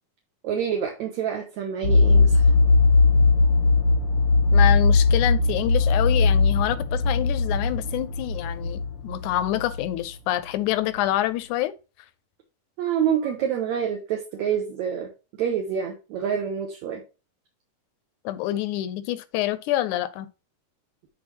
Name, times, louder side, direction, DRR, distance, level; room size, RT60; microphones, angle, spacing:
voice 1, 0.4-2.4 12.8-15.1 15.4-17.0, right 8 dB, 70° right, 2.3 m, -27 dB
sound 1, 1.8-9.9, left 3 dB, 60° left, 1.4 m, -19 dB
voice 2, 4.5-11.7 18.3-20.3, left 14 dB, 85° left, 2.0 m, -27 dB
10.5 x 4.3 x 3.0 m
omnidirectional pair, 3.6 m